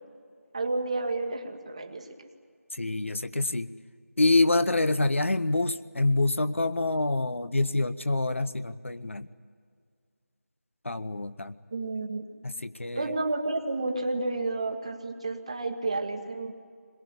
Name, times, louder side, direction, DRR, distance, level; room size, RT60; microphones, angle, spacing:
voice 1, 0.5-2.3 11.7-12.3 13.0-16.5, right 2 dB, 25° right, 6 dB, 1.3 m, -31 dB
voice 2, 2.7-3.7 4.2-9.3 10.8-11.5 12.4-13.0, left 2 dB, 55° left, 13 dB, 0.9 m, -26 dB
22.0 x 21.0 x 9.5 m, 2.1 s
figure-of-eight pair, 170°, 8 cm